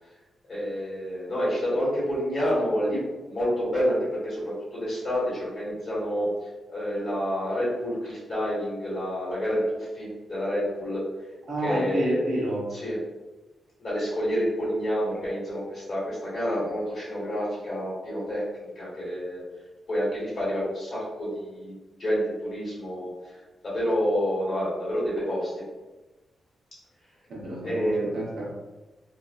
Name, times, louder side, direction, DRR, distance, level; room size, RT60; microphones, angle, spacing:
voice 1, 0.5-9.6 9.9-11.0 11.6-12.2 12.7-13.0 13.8-19.4 19.9-21.7 22.0-23.1 23.6-25.5 27.6-28.1, equal, 35° left, -9 dB, 1.3 m, -28 dB
voice 2, 11.5-12.7 27.3-28.5, right 1 dB, 65° right, -5 dB, 0.8 m, -29 dB
2.6 x 2.4 x 2.4 m, 1.2 s
wide cardioid pair, 130°, 0 cm